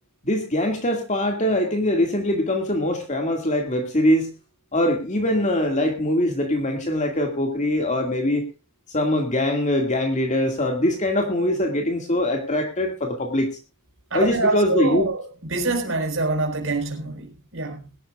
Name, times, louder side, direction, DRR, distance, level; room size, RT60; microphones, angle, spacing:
voice 1, 0.2-4.3 4.7-8.4 8.9-13.5 14.1-15.1, left 1 dB, 30° left, 2.2 m, -22 dB
voice 2, 14.1-17.8, right 3 dB, 60° right, 4.9 m, -25 dB
22.0 x 12.0 x 2.5 m
head